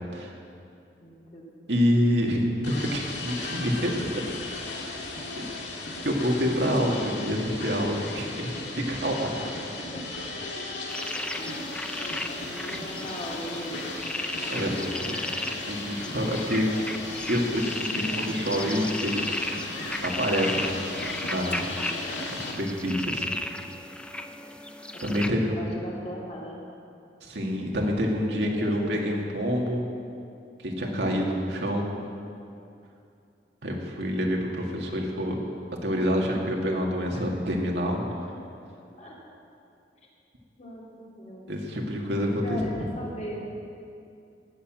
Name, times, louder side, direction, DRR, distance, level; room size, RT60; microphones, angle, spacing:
voice 1, 1.0-1.4 5.3-5.5 9.8-10.0 10.6-10.7 11.4-11.7 12.3-14.1 24.9-26.6 28.3-29.1 37.1-37.2 39.0-39.1 40.6-40.8 41.2-41.6 42.2-43.4, equal, 40° left, -4 dB, 2.8 m, -39 dB
voice 2, 1.7-4.2 4.6-4.9 6.0-9.4 14.5-15.3 15.7-16.7 17.3-19.4 20.0-20.7 21.3-21.7 22.3-23.3 25.0-25.7 27.2-29.8 30.6-32.0 33.6-35.4 35.8-38.0 41.5-42.8, equal, 75° right, -1 dB, 2.1 m, -27 dB
sound 1, 2.6-22.5, left 2 dB, 80° left, 2.0 m, -36 dB
sound 2, 10.9-25.3, left 1 dB, 5° left, 0.5 m, -35 dB
18.0 x 7.0 x 7.6 m, 2.5 s
head